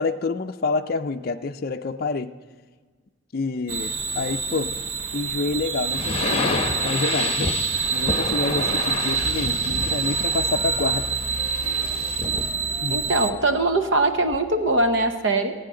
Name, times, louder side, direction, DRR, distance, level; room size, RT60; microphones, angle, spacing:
voice 1, 0.0-2.3 3.3-4.8 5.1-7.5 7.9-11.1 12.8-13.1, left 3 dB, 45° left, 6 dB, 0.5 m, -28 dB
sound 1, 3.7-13.3, right 6 dB, 85° right, 0.8 m, -27 dB
sound 2, 5.8-12.5, left 3 dB, 30° left, 1.0 m, -29 dB
sound 3, 9.1-15.1, left 2 dB, 25° right, 5.3 m, -39 dB
voice 2, 12.9-15.5, right 2 dB, 65° right, 7 dB, 1.0 m, -21 dB
27.0 x 9.1 x 3.8 m, 1.5 s
head